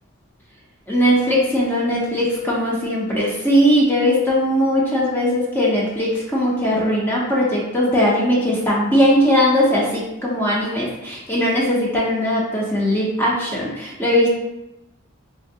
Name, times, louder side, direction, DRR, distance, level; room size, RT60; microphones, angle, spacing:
voice 1, 0.9-14.3, equal, 10° left, -6 dB, 0.6 m, -19 dB
3.5 x 2.8 x 2.7 m, 0.93 s
head